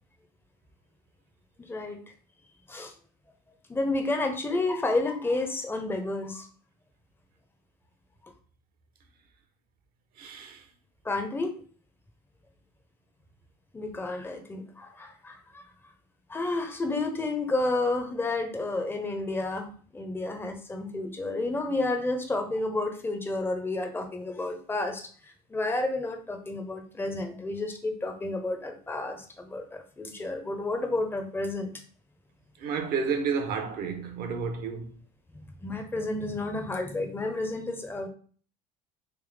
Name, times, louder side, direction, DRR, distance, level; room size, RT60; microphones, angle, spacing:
voice 1, 1.6-2.0 2.7-2.9 3.7-6.5 11.0-11.6 13.7-15.6 16.3-25.1 25.5-31.7 35.6-38.1, left 2 dB, 10° left, 0.7 m, -31 dB
voice 2, 10.2-10.7 32.6-35.0, right 5 dB, 50° right, 0.8 m, -31 dB
3.5 x 3.2 x 3.2 m
hypercardioid pair, 75°, 20 cm